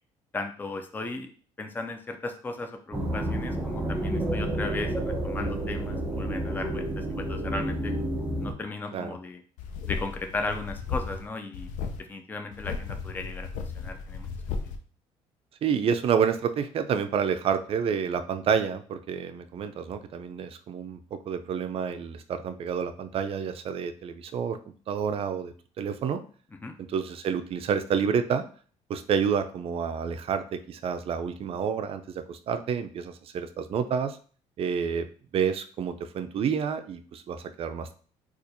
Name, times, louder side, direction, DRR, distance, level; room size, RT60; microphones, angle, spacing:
voice 1, 0.3-1.3 1.6-7.9 8.4-9.4 9.8-11.7 12.0-13.5 13.8-14.3 26.6-26.8, left 3 dB, 15° left, 5 dB, 0.4 m, -36 dB
sound 1, 2.9-8.5, right 1 dB, 10° right, 0.8 m, -30 dB
sound 2, 9.6-11.3 11.5-12.0 12.5-14.8, left 5 dB, 80° left, 0.5 m, -35 dB
voice 2, 15.6-24.6 24.9-26.2 26.9-28.4 28.9-34.2 34.6-35.1 35.3-37.9, right 7 dB, 50° right, 9 dB, 0.4 m, -29 dB
4.2 x 2.4 x 2.6 m, 0.42 s
cardioid pair, 105°, 13 cm